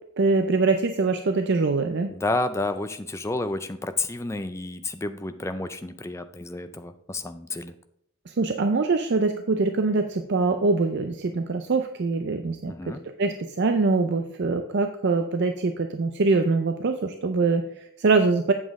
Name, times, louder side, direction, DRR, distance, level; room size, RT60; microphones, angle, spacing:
voice 1, 0.2-2.1 8.3-12.7 13.2-18.5, right 3 dB, 50° right, 7 dB, 0.5 m, -23 dB
voice 2, 2.1-7.7 12.7-13.0, left 2 dB, 15° left, 9 dB, 0.4 m, -30 dB
8.2 x 7.3 x 3.6 m, 0.73 s
head